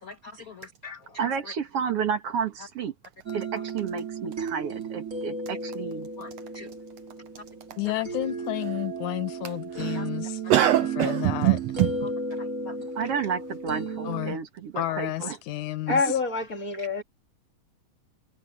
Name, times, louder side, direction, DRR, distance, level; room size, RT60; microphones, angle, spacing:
voice 1, 0.0-1.5 2.6-2.7 3.5-3.6 6.2-6.7 7.4-7.5 9.9-10.1 10.4-10.6 12.0-12.1 12.4-12.9 14.7-15.0 16.8-16.9, left 3 dB, 60° left, 0.9 m, -44 dB
voice 2, 1.2-2.9 3.3-6.1 13.0-15.4, right 7 dB, 55° right, 2.4 m, -31 dB
sound 1, 3.3-14.3, right 4 dB, 30° right, 2.8 m, -34 dB
voice 3, 7.8-10.4 11.0-11.6 14.0-14.4 14.8-16.0, left 16 dB, 90° left, 2.5 m, -31 dB
voice 4, 10.5-11.9, right 14 dB, 75° right, 1.5 m, -23 dB
voice 5, 15.9-17.0, left 4 dB, 30° left, 2.5 m, -26 dB
omnidirectional pair, 3.3 m